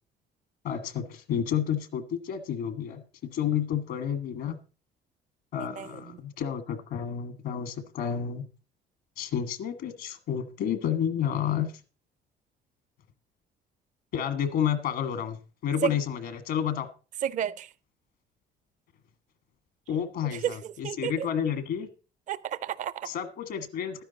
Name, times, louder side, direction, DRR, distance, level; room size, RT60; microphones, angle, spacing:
voice 1, 0.6-4.6 5.5-8.5 9.2-11.7 14.1-16.9 19.9-21.9 23.0-24.0, left 9 dB, 75° left, 1.5 m, -30 dB
voice 2, 5.6-5.9 15.8-15.9 17.2-17.7 20.4-20.6 20.8-21.3 22.3-23.1, right 9 dB, 50° right, 0.5 m, -31 dB
12.5 x 10.0 x 4.0 m
cardioid pair, 110°, 17 cm